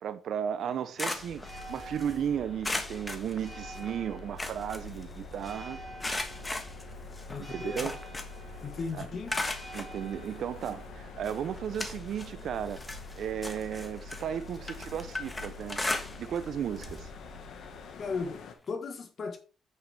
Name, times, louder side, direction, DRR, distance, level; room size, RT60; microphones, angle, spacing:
voice 1, 0.0-5.8 7.4-8.0 8.9-9.1 9.7-12.8 13.2-15.8 16.2-17.1, right 9 dB, 65° right, 0.6 m, -35 dB
sound 1, 0.6-2.2 2.6-3.9 4.2-5.5 6.0-8.5 8.8-9.9 10.6-10.7 11.2-12.4 12.7-16.5 16.8-17.0 17.3-17.4 18.7-18.8, left 2 dB, 15° left, 1.3 m, -37 dB
sound 2, 1.0-18.5, left 6 dB, 75° left, 1.5 m, -51 dB
Church bell, 1.1-18.3, left 1 dB, ahead, 4.6 m, -46 dB
voice 2, 7.3-7.9 8.6-9.3 18.0-19.4, left 4 dB, 50° left, 1.4 m, -36 dB
8.2 x 6.7 x 3.4 m
cardioid pair, 90°, 0 cm